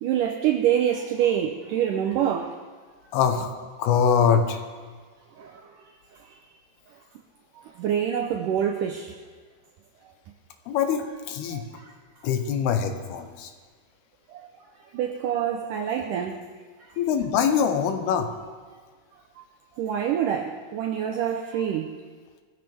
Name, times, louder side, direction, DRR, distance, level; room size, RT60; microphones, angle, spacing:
voice 1, 0.0-2.6 5.4-5.6 7.5-9.1 11.5-11.9 14.3-14.5 14.9-16.4 19.4-19.5 19.8-22.0, right 9 dB, 90° right, 3 dB, 1.9 m, -26 dB
voice 2, 3.1-3.5 3.8-4.6 10.7-11.6 12.2-13.5 17.0-18.3, left 7 dB, 80° left, 6 dB, 3.0 m, -23 dB
20.5 x 15.0 x 3.4 m, 1.5 s
omnidirectional pair, 4.6 m